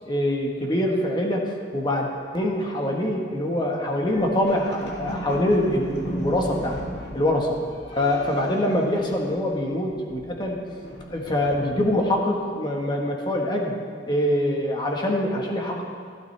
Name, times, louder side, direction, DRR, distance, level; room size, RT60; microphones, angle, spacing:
voice 1, 0.0-6.8 7.1-7.6 7.9-10.6 11.1-13.7 14.1-15.8, left 1 dB, 25° left, 0 dB, 1.4 m, -24 dB
sound 1, 4.0-9.6 9.9-12.2, equal, 70° left, 1.9 m, -36 dB
16.0 x 11.5 x 3.4 m, 2.1 s
head